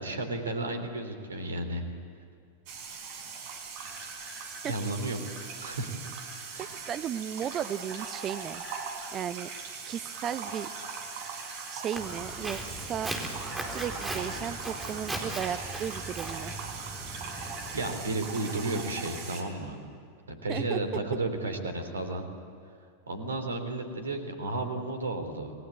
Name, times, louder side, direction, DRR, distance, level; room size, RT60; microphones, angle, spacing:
voice 1, 0.0-1.8 4.6-5.2 5.6-5.9 6.5-6.7 17.7-19.7 20.3-22.3 23.1-25.5, right 2 dB, 70° right, 7 dB, 3.2 m, -33 dB
sound 1, 2.7-19.4, right 5 dB, 45° right, 4.3 m, -40 dB
voice 2, 6.7-8.6 9.1-9.5 9.9-10.7 11.7-16.5 20.5-20.8 21.4-21.6, right 9 dB, 30° right, 14 dB, 0.9 m, -35 dB
Walk footsteps, 11.9-18.0, right 1 dB, 10° right, 4.3 m, -38 dB
29.0 x 20.0 x 8.5 m, 2.4 s
figure-of-eight pair, 90°, 0 cm